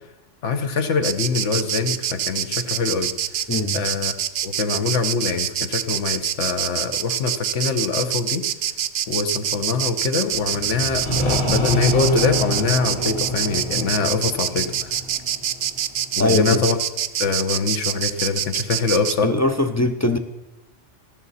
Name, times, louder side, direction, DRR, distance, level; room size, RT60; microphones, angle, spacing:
voice 1, 0.4-3.1 3.7-4.2 4.4-8.4 9.1-14.9 16.2-16.8 17.2-19.3, left 4 dB, 75° left, 7 dB, 1.3 m, -24 dB
Insect, 1.0-19.2, right 10 dB, 65° right, 0.7 m, -25 dB
voice 2, 3.5-3.8 16.2-16.6 19.2-20.2, left 2 dB, 25° left, 6 dB, 0.3 m, -21 dB
sound 1, 10.3-16.0, left 1 dB, 55° left, 2.6 m, -27 dB
13.5 x 12.5 x 4.1 m, 0.96 s
omnidirectional pair, 1.3 m